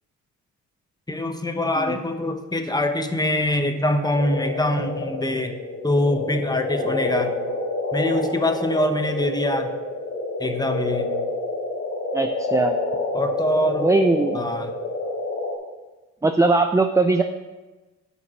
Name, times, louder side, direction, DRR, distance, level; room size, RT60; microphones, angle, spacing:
voice 1, 1.1-5.5 5.8-7.4 7.9-9.7 10.4-11.1 13.1-13.9 14.3-14.7, left 1 dB, 15° left, 7 dB, 1.1 m, -24 dB
sound 1, 4.1-15.5, left 2 dB, 55° left, 2.4 m, -28 dB
voice 2, 12.1-12.8 13.8-14.4 16.2-17.2, right 3 dB, 10° right, 7 dB, 0.5 m, -20 dB
10.5 x 5.8 x 6.2 m, 1.2 s
cardioid pair, 90°, 30 cm